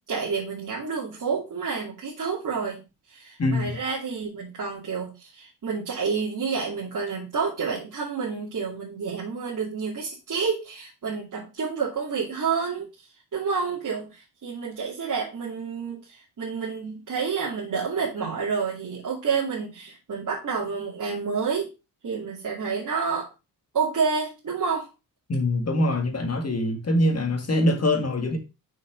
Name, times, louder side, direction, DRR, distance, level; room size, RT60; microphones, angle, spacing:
voice 1, 0.1-2.8 3.1-21.7 22.0-23.3 23.7-24.9, right 5 dB, 50° right, 2.7 m, -29 dB
voice 2, 3.4-3.7 25.3-28.4, left 1 dB, 40° left, 2.0 m, -23 dB
6.2 x 5.8 x 5.0 m
cardioid pair, 110°, 39 cm